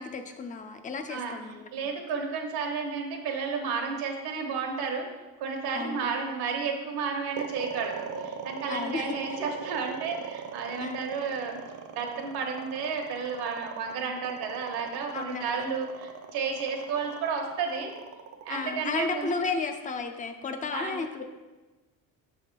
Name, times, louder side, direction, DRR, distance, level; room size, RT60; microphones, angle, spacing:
voice 1, 0.0-1.7 5.7-6.0 8.7-9.4 10.8-11.0 15.1-15.8 18.5-21.2, left 4 dB, 25° left, 6 dB, 0.3 m, -33 dB
voice 2, 1.7-5.1 5.4-11.6 11.9-17.9 18.4-19.3 20.7-21.2, right 5 dB, 85° right, 2 dB, 1.2 m, -32 dB
sound 1, 7.4-19.6, right 7 dB, 50° right, 0.6 m, -39 dB
7.0 x 3.5 x 5.8 m, 1.2 s
cardioid pair, 175°, 37 cm